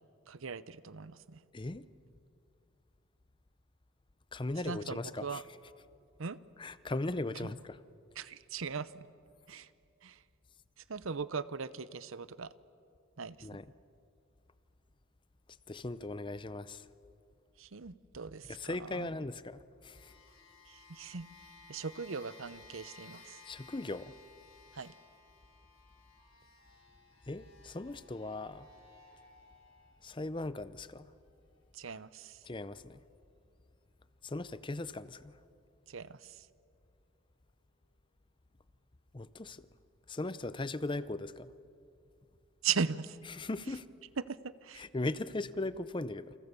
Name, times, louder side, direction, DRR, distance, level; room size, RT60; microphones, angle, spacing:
voice 1, 0.3-1.4 4.7-5.4 6.2-6.4 7.4-7.5 8.2-9.1 9.5-9.7 10.0-10.2 10.9-12.5 13.2-13.6 17.6-19.1 20.7-21.3 21.7-23.4 24.7-24.9 31.7-32.4 35.9-36.3 42.6-43.2 44.3-44.8, right 5 dB, 75° right, 0.8 m, -39 dB
voice 2, 1.5-1.9 4.3-5.4 6.6-7.8 13.4-13.6 15.7-16.9 18.5-20.1 23.5-24.1 27.3-28.7 30.0-31.1 32.4-33.0 34.2-35.3 39.1-39.7 40.1-41.5 43.3-43.9 44.7-46.3, left 2 dB, 25° left, 0.6 m, -38 dB
sound 1, 19.9-30.4 31.1-31.2, left 3 dB, 85° left, 7.2 m, -58 dB
28.5 x 28.0 x 6.8 m
head